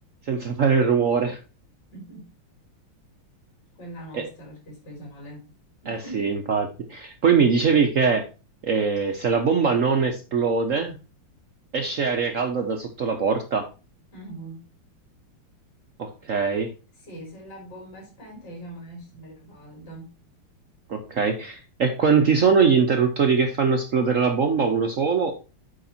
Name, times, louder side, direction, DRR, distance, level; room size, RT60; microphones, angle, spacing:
voice 1, 0.3-1.4 4.1-4.2 5.9-8.3 8.6-11.0 11.7-13.7 16.0-16.7 20.9-25.3, right 5 dB, 60° right, 5 dB, 0.8 m, -22 dB
voice 2, 1.9-2.3 3.8-5.5 5.8-6.4 14.1-14.6 16.9-20.1, right 1 dB, 50° left, 0 dB, 4.3 m, -42 dB
8.0 x 4.9 x 4.3 m, 0.31 s
omnidirectional pair, 2.3 m